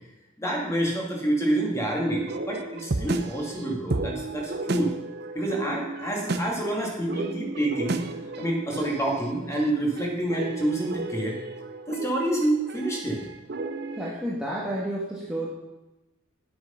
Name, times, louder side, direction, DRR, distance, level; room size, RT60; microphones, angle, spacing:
voice 1, 0.4-4.9 5.3-8.0 8.4-11.3 11.9-13.3, right 1 dB, 15° left, -2 dB, 2.3 m, -27 dB
sound 1, 2.0-14.1, right 2 dB, 50° right, 0.7 m, -33 dB
voice 2, 14.0-15.5, right 1 dB, 5° right, -6 dB, 1.4 m, -30 dB
10.5 x 7.9 x 5.7 m, 1.0 s
head